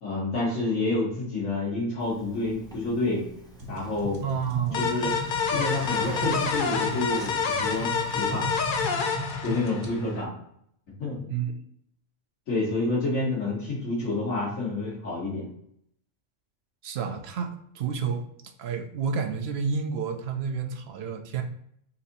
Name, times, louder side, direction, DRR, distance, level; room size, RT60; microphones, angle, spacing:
voice 1, 0.0-3.2 3.7-4.2 4.7-5.2 5.5-8.5 9.4-10.3 11.0-11.3 12.5-15.5, left 2 dB, 85° left, -6 dB, 1.8 m, -28 dB
Zipper (clothing), 2.0-8.9, right 1 dB, 5° left, 0.6 m, -45 dB
sound 1, 3.6-9.9, left 1 dB, 90° right, 1.4 m, -36 dB
voice 2, 4.2-4.8 11.3-11.5 16.8-17.5 17.7-18.2 18.6-21.4, right 6 dB, 60° right, 6 dB, 0.7 m, -29 dB
sound 2, 4.7-10.2, left 5 dB, 55° left, 0.6 m, -28 dB
4.1 x 2.7 x 3.9 m, 0.69 s
omnidirectional pair, 1.3 m